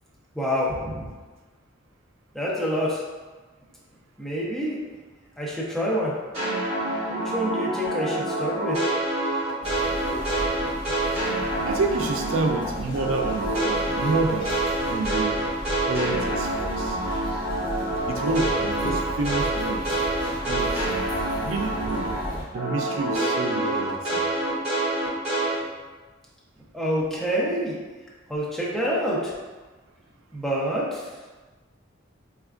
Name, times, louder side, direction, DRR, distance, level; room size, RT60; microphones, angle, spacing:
voice 1, 0.4-1.1 2.3-3.0 4.2-4.8 5.4-6.1 7.1-8.8 26.7-27.8 28.3-29.3 30.3-31.0, equal, ahead, -7 dB, 0.6 m, -27 dB
sound 1, 6.3-12.7 12.9-22.3 22.5-25.6, right 1 dB, 30° right, 1.1 m, -27 dB
sound 2, 9.6-22.4, equal, 25° left, 0.9 m, -35 dB
voice 2, 11.6-14.6 14.9-15.4 15.9-17.0 18.1-19.9 20.4-20.9 21.3-22.1 22.5-24.3, right 3 dB, 80° right, 3 dB, 0.4 m, -28 dB
4.2 x 2.3 x 2.4 m, 1.2 s
head